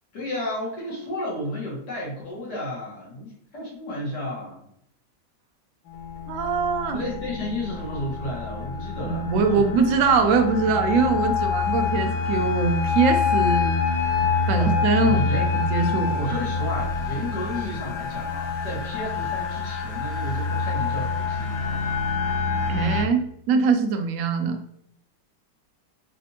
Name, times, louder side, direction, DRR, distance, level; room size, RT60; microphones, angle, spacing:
voice 1, 0.1-4.6 6.9-9.7 14.6-14.7 15.0-15.5 16.0-22.0, left 1 dB, 65° left, -5 dB, 1.9 m, -32 dB
sound 1, 5.9-23.0, left 5 dB, 90° left, 1.4 m, -26 dB
voice 2, 6.3-7.0 9.0-13.8 14.5-16.4 22.7-24.6, right 4 dB, 75° right, 5 dB, 0.7 m, -22 dB
4.2 x 2.6 x 2.8 m, 0.70 s
omnidirectional pair, 2.0 m